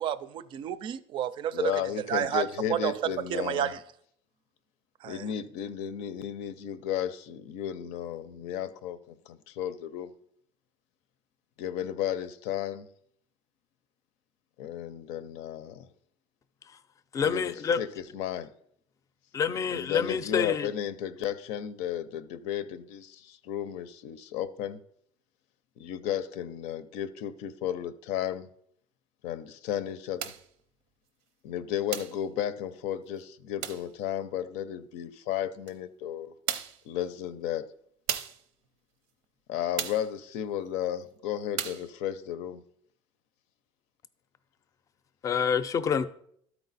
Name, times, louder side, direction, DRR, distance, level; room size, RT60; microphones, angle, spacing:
voice 1, 0.0-1.7 2.1-2.4 2.7-2.9 3.3-3.8 5.0-5.3, right 10 dB, 50° right, 0.4 m, -30 dB
voice 2, 1.5-3.7 5.1-10.1 11.6-12.9 14.6-15.9 17.2-18.5 19.7-24.8 25.8-28.5 29.2-30.3 31.4-36.3 36.8-37.7 39.5-42.6, left 10 dB, 85° left, 0.6 m, -34 dB
voice 3, 17.1-17.8 19.3-20.7 45.2-46.1, left 6 dB, 30° left, 0.5 m, -27 dB
sound 1, 30.2-30.5 31.9-32.2 33.6-33.9 35.7-35.8 36.5-36.8 38.1-38.4 39.8-40.1 41.6-41.9, right 10 dB, 90° right, 0.7 m, -34 dB
12.5 x 4.6 x 4.0 m
cardioid pair, 145°, 11 cm